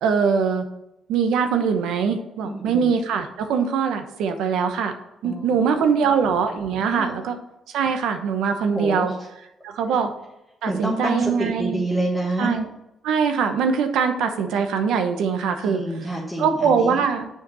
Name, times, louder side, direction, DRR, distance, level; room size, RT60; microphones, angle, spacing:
voice 1, 0.0-0.6 1.1-4.9 5.2-7.4 7.7-9.1 9.6-10.1 10.6-11.8 12.4-12.7 13.0-15.8 16.4-17.3, right 6 dB, 85° right, 7 dB, 1.0 m, -22 dB
voice 2, 2.4-2.9 5.2-5.5 6.9-7.1 8.7-9.1 9.9-10.0 10.6-12.5 15.6-17.0, right 1 dB, 5° left, -3 dB, 1.4 m, -27 dB
7.0 x 5.0 x 6.3 m, 0.89 s
cardioid pair, 90°, 0 cm